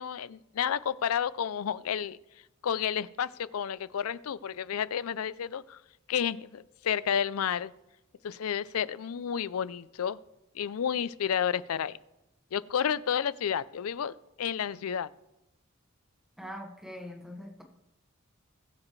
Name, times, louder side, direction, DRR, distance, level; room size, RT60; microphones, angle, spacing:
voice 1, 0.0-2.2 2.6-5.8 6.1-7.7 8.2-10.2 10.5-12.0 12.5-15.1, left 8 dB, 90° left, 18 dB, 0.4 m, -31 dB
voice 2, 16.4-17.6, equal, ahead, 2 dB, 1.4 m, -42 dB
20.5 x 7.3 x 3.2 m, 0.95 s
head